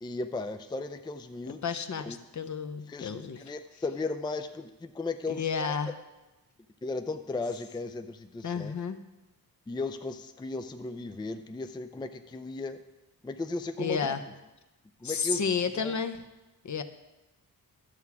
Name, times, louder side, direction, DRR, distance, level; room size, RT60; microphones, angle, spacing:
voice 1, 0.0-2.2 2.9-5.8 6.8-8.7 9.7-12.8 13.2-14.2 15.0-15.5 15.8-16.0, left 3 dB, 10° left, 8 dB, 0.4 m, -36 dB
voice 2, 1.6-3.4 5.3-5.9 8.4-9.0 13.8-14.2 15.0-16.2 16.6-16.8, left 6 dB, 50° left, 9 dB, 0.7 m, -31 dB
11.5 x 7.1 x 4.8 m, 1.1 s
wide cardioid pair, 95°, 37 cm